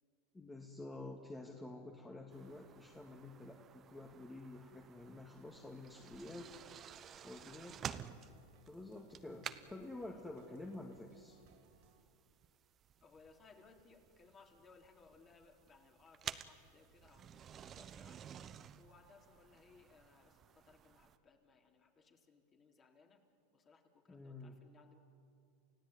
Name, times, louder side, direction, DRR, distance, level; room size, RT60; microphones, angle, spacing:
voice 1, 0.3-6.5 7.2-7.8 8.7-11.4 24.1-24.5, left 2 dB, 10° left, 1 dB, 2.0 m, -49 dB
sound 1, 2.3-21.2, right 9 dB, 35° right, 1.0 m, -53 dB
sound 2, 6.2-12.0, right 6 dB, 65° right, 3.3 m, -69 dB
voice 2, 13.0-18.2 18.8-23.2 23.5-25.0, left 4 dB, 30° left, 3 dB, 3.5 m, -64 dB
29.0 x 16.0 x 9.5 m, 2.5 s
hypercardioid pair, 100°, 0 cm